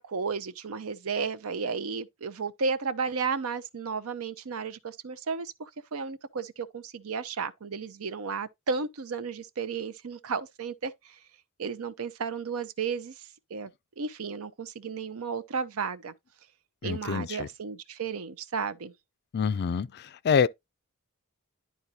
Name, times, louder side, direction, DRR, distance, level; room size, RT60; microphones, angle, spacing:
voice 1, 0.0-10.9 11.6-13.1 13.5-13.7 14.0-16.1 16.8-18.9, right 5 dB, 70° right, 0.6 m, -33 dB
voice 2, 16.8-17.5 19.3-20.5, left 6 dB, 50° left, 0.4 m, -26 dB
11.0 x 3.9 x 2.8 m
head